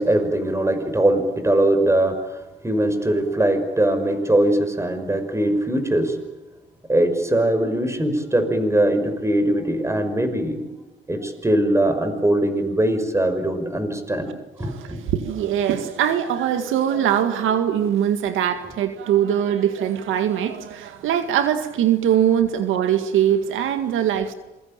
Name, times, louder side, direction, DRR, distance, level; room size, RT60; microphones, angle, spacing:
voice 1, 0.0-6.2 6.9-10.6 11.1-14.3 14.6-15.0, right 1 dB, 15° right, 5.7 m, -21 dB
voice 2, 14.3-24.3, right 9 dB, 85° right, 2.0 m, -22 dB
27.0 x 22.5 x 9.0 m
cardioid pair, 90°, 20 cm